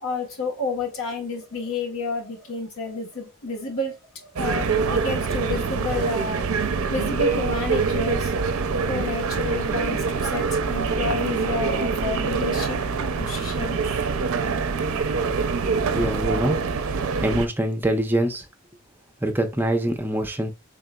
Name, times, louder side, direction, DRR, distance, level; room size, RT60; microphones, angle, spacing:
voice 1, 0.0-6.4 6.9-8.3 8.9-12.8 13.2-13.8, left 3 dB, 75° left, 1.1 m, -30 dB
Airport Ambiance, 4.4-17.5, right 5 dB, 70° right, 0.4 m, -25 dB
voice 2, 15.9-16.6 17.2-18.4 19.2-20.5, right 1 dB, 10° right, 0.5 m, -24 dB
3.8 x 3.6 x 2.2 m
head